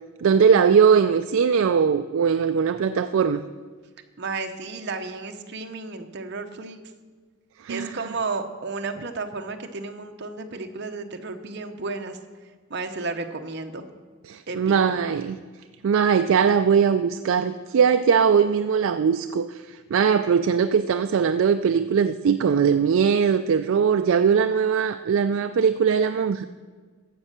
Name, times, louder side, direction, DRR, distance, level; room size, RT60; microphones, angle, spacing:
voice 1, 0.2-3.4 7.6-8.0 14.3-15.4 15.8-26.5, right 6 dB, 65° right, 9 dB, 0.3 m, -20 dB
voice 2, 4.2-6.8 7.7-12.2 12.7-13.8 14.5-14.7, right 3 dB, 50° right, 6 dB, 0.8 m, -32 dB
15.0 x 5.4 x 6.5 m, 1.5 s
head